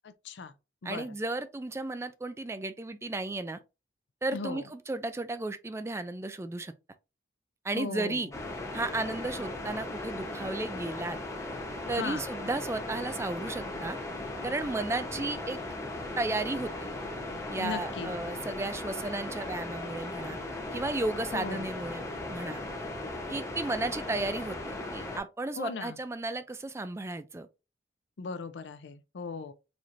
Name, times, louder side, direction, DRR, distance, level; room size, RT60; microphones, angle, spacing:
voice 1, 0.0-0.5 0.8-1.1 4.3-4.7 7.7-8.3 12.0-12.3 17.6-18.2 21.3-21.7 25.6-26.0 28.2-29.5, left 4 dB, 75° left, 0.5 m, -38 dB
voice 2, 0.8-3.6 4.2-6.7 7.6-8.3 8.7-11.2 11.9-14.0 14.4-15.6 16.2-16.9 17.5-20.4 20.7-22.0 22.3-22.6 23.3-27.5, right 2 dB, 15° right, 0.3 m, -34 dB
sound 1, 8.3-25.2, left 2 dB, 15° left, 0.8 m, -37 dB
4.1 x 3.1 x 2.5 m
head